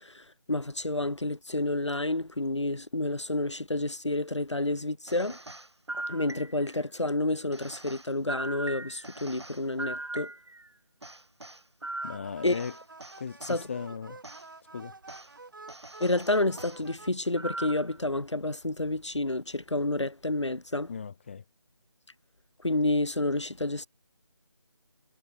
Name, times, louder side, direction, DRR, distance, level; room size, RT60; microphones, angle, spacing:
voice 1, 0.0-5.4 6.1-10.3 12.4-12.6 13.4-13.7 16.0-20.9 22.6-23.9, left 2 dB, 70° left, 2.1 m, -29 dB
sound 1, 5.1-6.8 7.5-10.7 11.0-13.6 14.2-14.4 15.1-15.3 15.7-16.8 17.3-18.0, right 2 dB, 65° right, 3.8 m, -40 dB
voice 2, 12.0-12.7 13.2-14.2 14.7-14.9 20.9-21.4, left 6 dB, 25° left, 3.3 m, -37 dB
sound 2, 12.0-17.1, right 3 dB, 45° right, 8.0 m, -49 dB
figure-of-eight pair, 160°, 16 cm